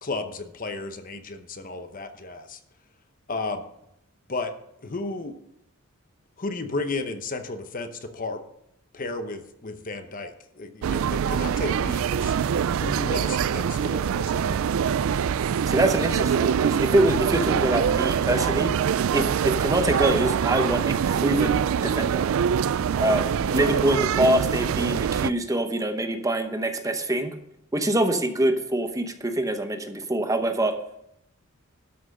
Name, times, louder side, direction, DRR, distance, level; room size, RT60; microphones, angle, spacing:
voice 1, 0.0-2.6 3.3-3.6 4.3-4.5 4.8-5.3 6.4-8.4 8.9-12.3 12.8-14.7, left 3 dB, 40° left, 8 dB, 0.9 m, -33 dB
sound 1, 10.8-25.3, right 8 dB, 65° right, 0.3 m, -24 dB
voice 2, 15.7-18.7 19.1-22.2 23.0-27.4 27.7-30.7, right 1 dB, 15° right, 7 dB, 0.9 m, -24 dB
12.5 x 6.2 x 6.5 m, 0.79 s
head